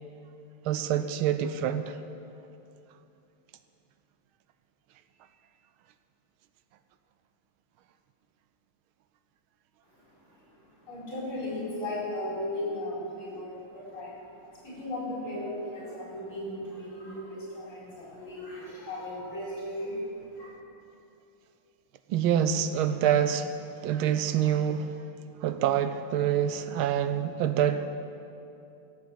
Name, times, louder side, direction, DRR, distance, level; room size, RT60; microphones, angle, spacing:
voice 1, 0.6-2.0 22.1-23.5 23.8-24.9 25.4-27.9, right 9 dB, 80° right, 10 dB, 1.4 m, -26 dB
voice 2, 9.8-20.5, left 1 dB, 65° left, -6 dB, 5.3 m, -37 dB
16.5 x 7.6 x 7.6 m, 2.7 s
omnidirectional pair, 2.4 m